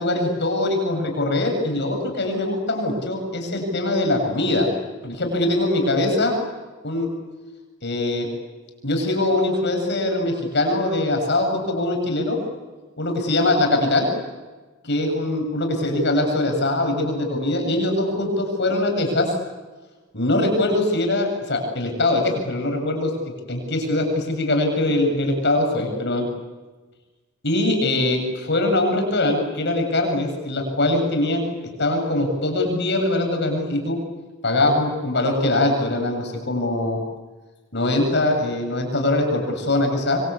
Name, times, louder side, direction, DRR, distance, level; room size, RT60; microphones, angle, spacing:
voice 1, 0.0-4.7 5.0-6.4 6.8-7.1 7.8-8.3 8.8-12.4 13.0-14.1 14.8-19.3 20.1-26.3 27.4-31.4 31.8-34.0 34.4-37.0 37.7-40.2, left 2 dB, 60° left, 3 dB, 7.9 m, -22 dB
26.0 x 25.5 x 8.5 m, 1.2 s
head